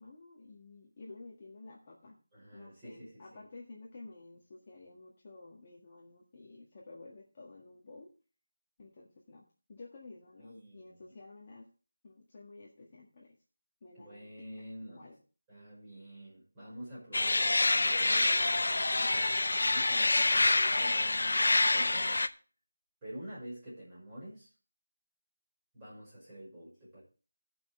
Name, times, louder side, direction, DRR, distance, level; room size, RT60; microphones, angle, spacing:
voice 1, 0.0-2.2 2.5-8.1 8.8-11.7 12.0-13.4 13.8-14.3 14.6-15.2, left 3 dB, 25° left, -3 dB, 1.7 m, -52 dB
voice 2, 2.3-3.4 10.4-11.0 13.9-15.1 15.5-22.1 23.0-24.5 25.7-27.0, equal, 10° right, -9 dB, 5.5 m, -48 dB
sound 1, 17.1-22.3, left 2 dB, 60° left, 0.8 m, -27 dB
17.5 x 6.2 x 4.3 m, 0.36 s
figure-of-eight pair, 175°, 0 cm